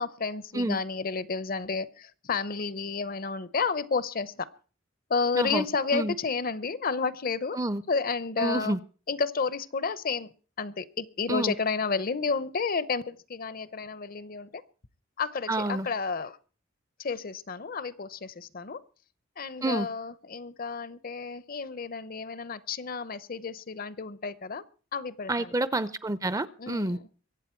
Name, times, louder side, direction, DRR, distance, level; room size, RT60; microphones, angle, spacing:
voice 1, 0.0-4.5 5.1-7.6 7.9-8.8 9.1-10.3 10.6-14.6 15.2-16.4 17.0-18.8 19.4-24.6 24.9-25.5 26.6-27.0, left 4 dB, 50° left, 0.8 m, -31 dB
voice 2, 5.3-5.7 5.9-6.1 7.5-7.8 8.4-8.8 11.3-11.5 15.5-15.9 19.6-19.9 25.3-27.0, right 2 dB, 15° right, 0.6 m, -28 dB
23.5 x 8.4 x 4.5 m
head